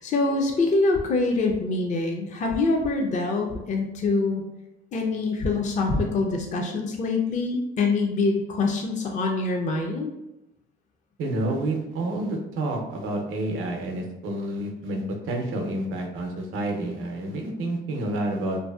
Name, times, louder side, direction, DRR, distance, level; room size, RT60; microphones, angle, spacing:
voice 1, 0.0-4.4 4.9-10.1, left 3 dB, 40° left, 1 dB, 0.4 m, -25 dB
voice 2, 11.2-18.6, right 1 dB, 90° right, 2 dB, 0.6 m, -29 dB
2.6 x 2.4 x 2.3 m, 0.91 s
cardioid pair, 90°, 20 cm